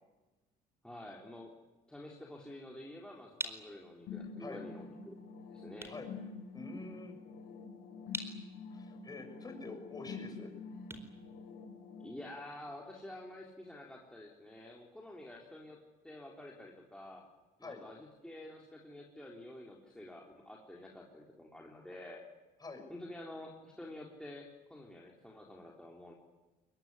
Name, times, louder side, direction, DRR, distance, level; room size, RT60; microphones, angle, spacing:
voice 1, 0.8-1.5 1.9-5.2 5.5-5.9 12.0-15.8 16.0-17.3 17.6-22.2 22.9-26.1, left 1 dB, 5° left, -2 dB, 3.6 m, -49 dB
sound 1, 3.4-12.1, right 2 dB, 15° right, 4.4 m, -49 dB
sound 2, 4.1-12.1, left 5 dB, 80° left, 6.1 m, -47 dB
voice 2, 6.5-7.1 8.7-10.5 17.6-17.8 22.6-22.9, left 3 dB, 25° left, 4 dB, 6.9 m, -46 dB
22.5 x 22.0 x 9.7 m, 1.2 s
cardioid pair, 110°, 17 cm